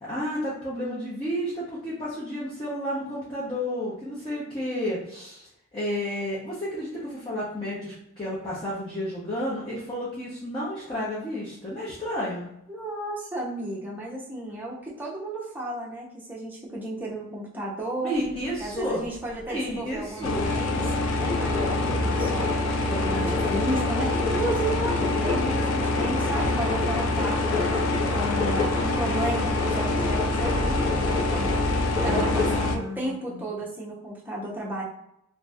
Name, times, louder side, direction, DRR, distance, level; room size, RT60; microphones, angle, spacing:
voice 1, 0.0-5.5 5.7-12.5 18.0-19.0 19.5-20.5 31.9-33.4, equal, 20° left, -9 dB, 0.8 m, -31 dB
voice 2, 12.7-18.2 18.6-22.5 22.8-27.6 28.1-31.5 32.0-34.8, right 1 dB, 10° right, -5 dB, 0.7 m, -33 dB
sound 1, 18.1-32.7, left 3 dB, 50° left, 1.1 m, -31 dB
sound 2, 20.2-32.8, left 2 dB, 75° left, 0.4 m, -26 dB
2.6 x 2.5 x 3.3 m, 0.79 s
head